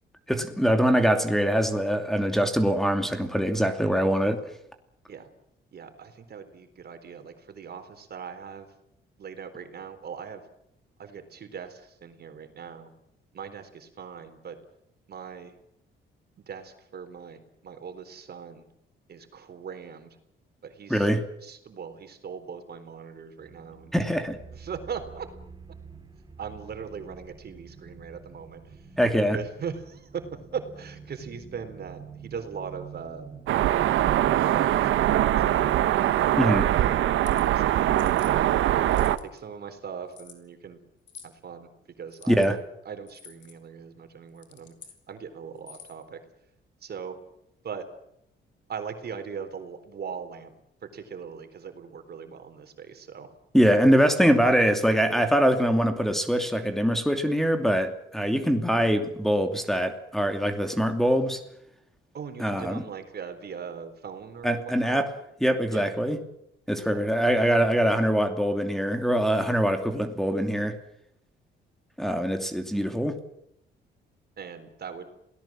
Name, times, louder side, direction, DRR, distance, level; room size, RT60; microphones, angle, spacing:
voice 1, 0.3-4.4 20.9-21.2 23.9-24.4 29.0-29.4 36.4-36.7 42.3-42.6 53.5-61.4 62.4-62.8 64.4-65.1 65.4-66.2 66.7-70.8 72.0-73.2, equal, ahead, 4 dB, 2.8 m, -23 dB
voice 2, 5.7-8.7 9.2-10.4 11.0-12.9 13.3-14.6 15.1-15.5 16.4-18.7 19.1-20.1 20.6-21.1 21.4-24.1 24.5-25.3 26.4-28.9 29.2-30.2 30.5-33.3 34.0-36.0 36.8-37.1 37.5-38.4 39.2-40.8 41.2-41.7 42.0-44.7 45.1-46.2 46.8-47.2 47.6-47.9 48.7-50.5 50.8-53.3 62.1-65.0 65.7-65.9 66.8-67.1 74.4-75.1, right 6 dB, 55° right, 8 dB, 4.0 m, -40 dB
sound 1, 23.4-36.1, right 5 dB, 25° right, 3.6 m, -46 dB
sound 2, 33.5-39.2, right 12 dB, 80° right, 1.2 m, -22 dB
sound 3, 37.1-37.4 38.0-38.3 38.8-39.4 40.1-40.4 41.1-41.4 42.1-42.5 43.1-43.5 44.3-45.0 45.6-46.0, left 7 dB, 70° left, 4.5 m, -49 dB
27.5 x 18.0 x 7.6 m, 0.77 s
cardioid pair, 90°, 20 cm